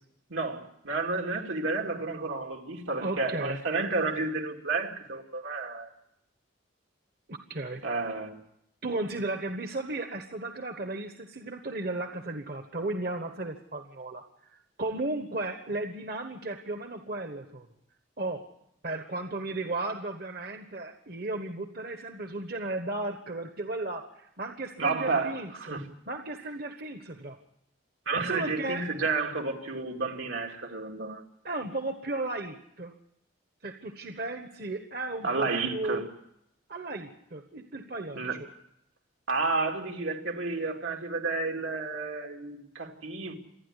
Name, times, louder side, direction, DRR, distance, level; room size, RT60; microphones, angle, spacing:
voice 1, 0.3-5.9 7.8-8.4 24.8-25.8 28.1-31.2 35.2-36.1 38.1-38.4 39.3-43.3, right 3 dB, 80° right, 2 dB, 2.6 m, -31 dB
voice 2, 3.0-3.6 7.3-7.8 8.8-14.2 14.8-17.7 18.2-18.4 18.8-25.8 26.1-27.4 28.2-28.8 31.4-32.9 33.6-36.0 36.7-38.2, right 2 dB, 50° right, 6 dB, 1.3 m, -35 dB
27.5 x 10.0 x 9.9 m, 0.78 s
head